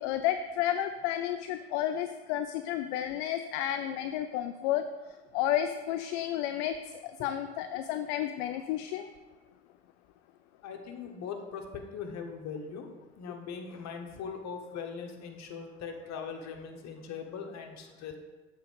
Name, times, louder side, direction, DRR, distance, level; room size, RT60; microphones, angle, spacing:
voice 1, 0.0-4.8 5.3-6.8 7.0-9.1, left 11 dB, 70° left, 8 dB, 0.5 m, -31 dB
voice 2, 10.6-18.2, left 6 dB, 50° left, 4 dB, 1.2 m, -40 dB
7.5 x 4.0 x 5.1 m, 1.2 s
hypercardioid pair, 75°, 34 cm